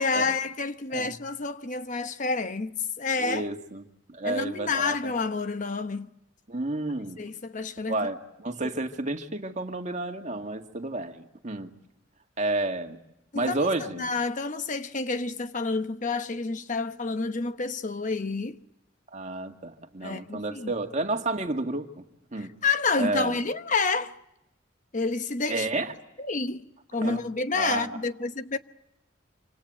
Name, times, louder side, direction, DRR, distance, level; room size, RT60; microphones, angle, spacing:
voice 1, 0.0-3.5 4.2-6.1 7.2-8.0 13.3-13.7 14.0-18.6 20.0-20.7 22.4-24.2 24.9-25.7 26.2-26.6 26.9-28.6, left 4 dB, 40° left, 1.0 m, -29 dB
voice 2, 3.2-3.8 4.1-5.1 6.5-7.2 7.9-11.7 12.4-13.0 13.3-14.1 19.1-21.9 22.3-22.5 23.0-23.4 25.5-25.9 27.0-27.2 27.5-28.0, right 2 dB, 35° right, 2.1 m, -31 dB
27.5 x 26.0 x 7.7 m
head